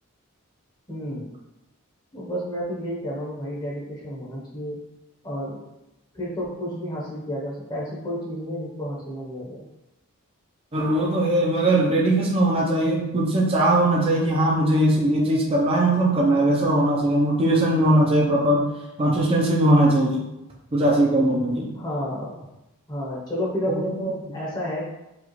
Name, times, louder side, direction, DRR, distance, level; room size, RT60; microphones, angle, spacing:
voice 1, 0.9-1.3 2.1-4.8 5.2-5.6 6.1-9.7 21.7-22.3 22.9-23.9 24.3-24.8, equal, 20° left, -5 dB, 0.8 m, -31 dB
voice 2, 10.7-18.7 19.0-20.2 20.7-21.8 23.7-24.4, right 1 dB, 25° right, -3 dB, 0.5 m, -20 dB
4.8 x 2.4 x 3.0 m, 0.94 s
head